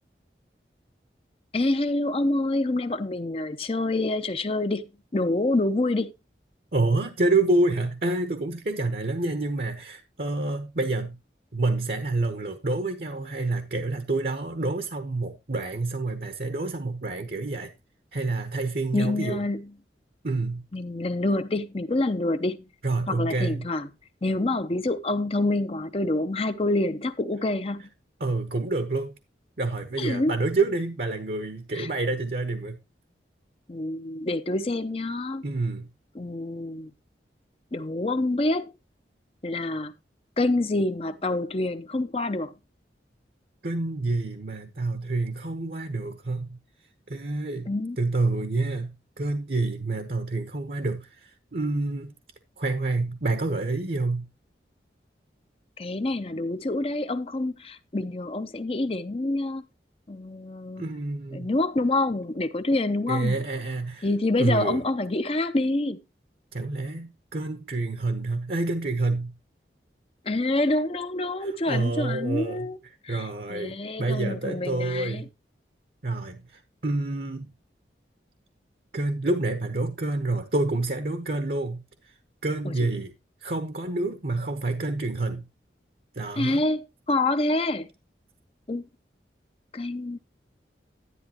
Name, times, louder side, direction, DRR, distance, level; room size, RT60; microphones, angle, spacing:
voice 1, 1.5-6.1 18.9-19.7 20.7-22.6 23.1-23.9 24.2-27.8 30.0-30.3 31.7-31.9 33.7-35.4 36.1-36.9 37.7-38.7 39.4-39.9 40.4-42.5 47.7-48.0 55.8-59.7 60.1-60.9 61.3-63.4 64.0-66.0 70.3-72.8 73.0-75.2 82.6-82.7 86.4-87.9 88.7-88.8 89.7-90.2, left 2 dB, 30° left, 0.6 m, -27 dB
voice 2, 6.7-11.2 11.5-17.7 18.1-19.4 20.2-20.6 22.8-23.7 28.2-29.2 29.6-32.8 35.4-35.9 43.6-46.6 47.1-52.1 52.6-54.3 60.8-61.5 63.1-64.1 64.4-64.8 66.5-69.3 71.4-72.7 73.1-75.3 76.0-77.5 78.9-82.1 82.4-83.1 83.4-85.5 86.1-86.6, right 2 dB, 55° right, 1.0 m, -28 dB
11.0 x 10.5 x 2.9 m
head